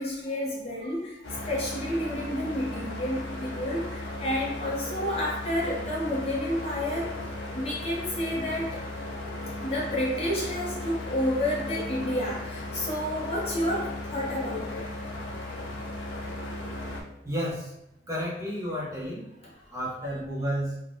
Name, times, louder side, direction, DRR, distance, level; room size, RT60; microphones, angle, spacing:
voice 1, 0.0-7.2 7.5-8.8 9.6-14.9 19.4-19.5, left 1 dB, 30° left, -5 dB, 0.7 m, -30 dB
sound 1, 1.2-17.0, left 1 dB, 70° left, 0.6 m, -36 dB
voice 2, 17.2-17.7 18.1-19.3 19.7-20.7, equal, 15° right, -6 dB, 0.6 m, -31 dB
3.2 x 2.1 x 2.6 m, 0.85 s
head